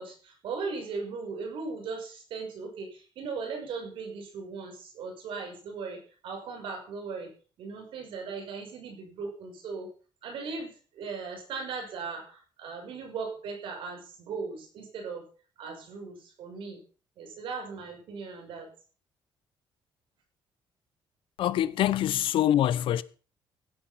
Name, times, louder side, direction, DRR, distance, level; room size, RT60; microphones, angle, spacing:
voice 1, 0.0-7.3 7.6-9.9 10.2-15.3 15.6-16.8 17.2-18.7, right 4 dB, 75° right, 6.1 m, -38 dB
voice 2, 21.4-23.0, left 12 dB, 75° left, 0.9 m, -25 dB
17.0 x 10.0 x 5.8 m
cardioid pair, 155°, 9 cm